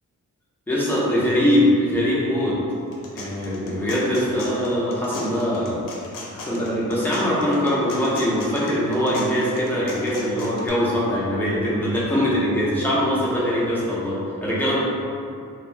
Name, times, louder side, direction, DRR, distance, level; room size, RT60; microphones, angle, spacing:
voice 1, 0.7-2.6 3.1-5.8 6.3-14.8, equal, 5° left, -7 dB, 0.5 m, -22 dB
sound 1, 2.7-10.7, left 2 dB, 75° left, 0.5 m, -38 dB
3.0 x 2.2 x 2.5 m, 2.4 s
wide cardioid pair, 140°, 33 cm